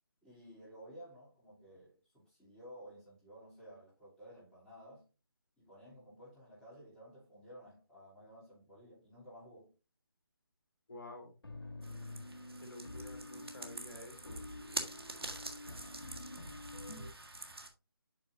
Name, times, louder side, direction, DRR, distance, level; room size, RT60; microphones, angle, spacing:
voice 1, 0.2-5.0 5.6-9.7, equal, 5° left, 3.0 m, -54 dB
voice 2, 10.9-11.3 12.6-14.4, left 2 dB, 55° left, 2.3 m, -50 dB
sound 1, 11.4-17.1, left 2 dB, 75° left, 1.4 m, -48 dB
sound 2, 11.8-17.7, right 2 dB, 75° right, 1.5 m, -46 dB
8.1 x 6.0 x 2.6 m
figure-of-eight pair, 150°, 13 cm